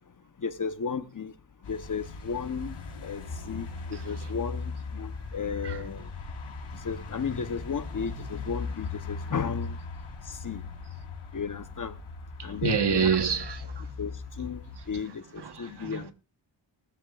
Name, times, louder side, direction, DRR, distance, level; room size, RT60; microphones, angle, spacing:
voice 1, 0.4-1.3 1.6-6.1 6.7-9.8 10.3-10.7 11.3-12.0 12.4-13.2 14.0-16.1, left 6 dB, 40° left, 1.0 m, -34 dB
sound 1, 1.6-15.0, left 4 dB, 85° left, 4.1 m, -39 dB
voice 2, 12.4-13.8 15.4-16.1, right 7 dB, 55° right, 1.4 m, -28 dB
19.5 x 13.0 x 2.4 m
wide cardioid pair, 150°, 48 cm